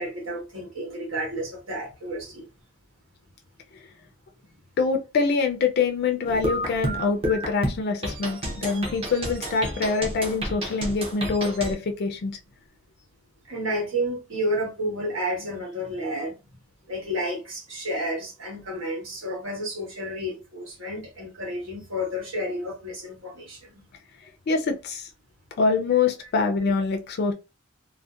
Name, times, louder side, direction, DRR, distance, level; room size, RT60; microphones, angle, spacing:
voice 1, 0.0-2.4 13.4-16.3 16.9-23.8, equal, 85° right, 1.3 m, -31 dB
voice 2, 4.8-12.3 24.5-25.1 25.6-27.3, left 4 dB, 55° left, 0.4 m, -25 dB
sound 1, 6.2-11.7, right 1 dB, 30° right, 0.6 m, -31 dB
2.6 x 2.1 x 2.3 m
head